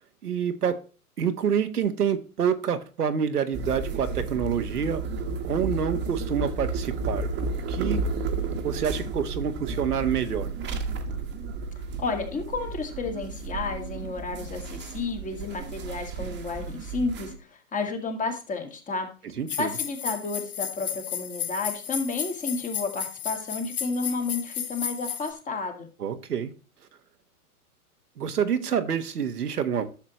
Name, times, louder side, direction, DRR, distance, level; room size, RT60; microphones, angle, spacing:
voice 1, 0.2-0.8 1.2-5.0 5.4-8.0 8.6-10.5 19.4-19.7 26.0-26.5 28.2-29.9, right 8 dB, 85° right, 1.4 m, -27 dB
sound 1, 3.5-17.4, right 3 dB, 25° right, 1.5 m, -32 dB
voice 2, 12.0-19.1 19.6-25.9, left 3 dB, 15° left, 2.1 m, -31 dB
sound 2, 19.5-25.3, left 9 dB, 70° left, 1.5 m, -33 dB
11.5 x 7.3 x 3.1 m
hypercardioid pair, 125°, 45 cm